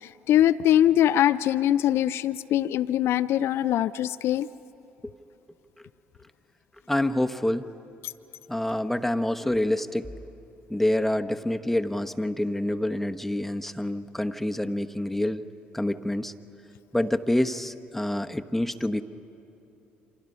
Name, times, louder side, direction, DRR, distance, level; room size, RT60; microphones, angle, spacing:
voice 1, 0.0-4.5, left 12 dB, 55° left, 14 dB, 0.5 m, -22 dB
voice 2, 6.9-7.7 8.5-10.1 10.7-15.4 15.7-16.3 16.9-19.0, left 1 dB, 5° left, 8 dB, 1.1 m, -27 dB
29.0 x 26.0 x 5.5 m, 3.0 s
hypercardioid pair, 55°, 5 cm